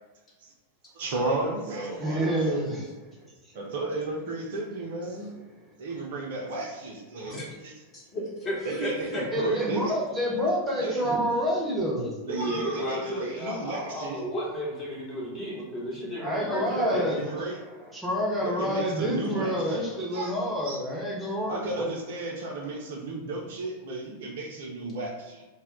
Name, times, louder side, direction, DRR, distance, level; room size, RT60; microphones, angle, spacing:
voice 1, 1.0-2.6 3.5-5.4 5.8-7.4 7.6-7.7 8.6-9.9 10.8-11.1 12.3-14.2 16.7-17.6 18.4-19.9 20.1-20.3 20.6-20.8 21.5-25.5, right 2 dB, 55° right, 0 dB, 0.4 m, -33 dB
voice 2, 2.0-3.1 9.3-12.1 16.2-17.2 17.5-21.9, equal, 10° right, -4 dB, 0.7 m, -28 dB
voice 3, 7.9-9.2 12.0-17.1, equal, 25° left, -6 dB, 1.0 m, -33 dB
2.1 x 2.1 x 3.6 m, 1.1 s
figure-of-eight pair, 90°, 0 cm